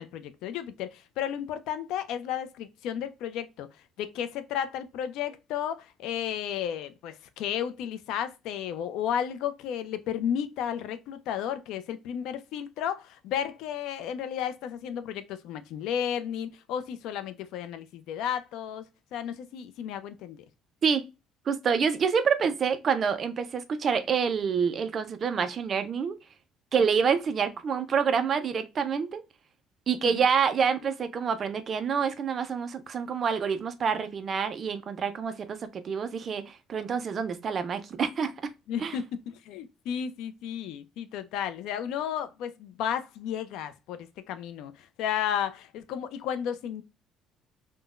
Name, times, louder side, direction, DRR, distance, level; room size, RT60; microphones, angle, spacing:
voice 1, 0.0-3.7 4.0-20.4 30.0-30.2 38.7-46.8, left 9 dB, 70° left, 0.4 m, -33 dB
voice 2, 21.5-26.2 26.7-29.2 29.9-38.5 38.8-39.0, right 6 dB, 35° right, 0.4 m, -27 dB
3.7 x 2.1 x 2.3 m
cardioid pair, 165°, 0 cm